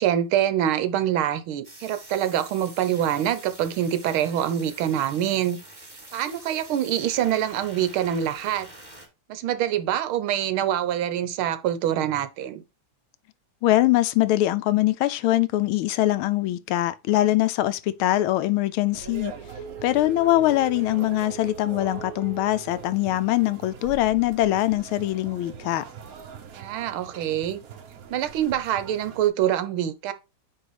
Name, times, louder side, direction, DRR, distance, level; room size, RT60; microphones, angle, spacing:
voice 1, 0.0-5.6 6.1-8.7 9.3-12.6 26.5-27.6 28.1-30.1, right 11 dB, 75° right, 1.6 m, -25 dB
sound 1, 1.6-9.1, right 1 dB, 20° right, 2.4 m, -46 dB
voice 2, 13.6-19.3 19.8-25.8, left 15 dB, 80° left, 1.4 m, -22 dB
sound 2, 18.9-29.3, right 6 dB, 55° right, 1.1 m, -42 dB
Telephone, 19.5-22.6 23.0-23.1, right 7 dB, 40° right, 2.0 m, -40 dB
9.2 x 3.1 x 4.7 m
omnidirectional pair, 2.4 m